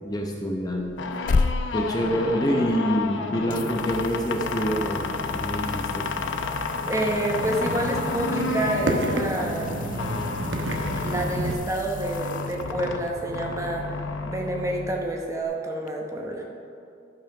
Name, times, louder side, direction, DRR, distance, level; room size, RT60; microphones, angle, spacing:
voice 1, 0.0-1.0 1.7-6.1, equal, 20° left, 0 dB, 0.7 m, -26 dB
sound 1, 0.8-15.4, left 3 dB, 80° left, 0.7 m, -31 dB
sound 2, 1.0-3.1 3.5-13.1 15.9-16.0, left 4 dB, 45° left, 0.3 m, -34 dB
voice 2, 6.8-9.8 11.0-13.8 14.3-16.4, right 1 dB, 15° right, 1 dB, 0.9 m, -28 dB
sound 3, 6.9-11.5, right 1 dB, 75° right, 1.0 m, -30 dB
11.5 x 5.6 x 5.9 m, 2.6 s
head